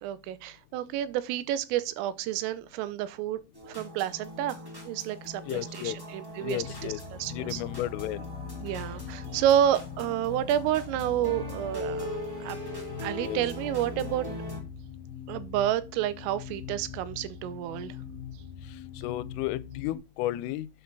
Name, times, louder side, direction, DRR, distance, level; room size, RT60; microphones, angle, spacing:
voice 1, 0.0-3.4 3.7-4.6 4.8-6.9 7.2-7.6 8.6-12.6 13.0-14.3 15.3-18.0, right 11 dB, 85° right, 3.4 m, -29 dB
sound 1, 3.5-14.6, equal, 10° right, 1.3 m, -40 dB
voice 2, 5.5-6.0 6.4-7.0 7.3-8.3 13.2-13.4 19.0-20.7, left 15 dB, 85° left, 3.2 m, -33 dB
sound 2, 6.6-20.0, left 8 dB, 55° left, 3.4 m, -42 dB
9.0 x 6.8 x 3.9 m
omnidirectional pair, 5.8 m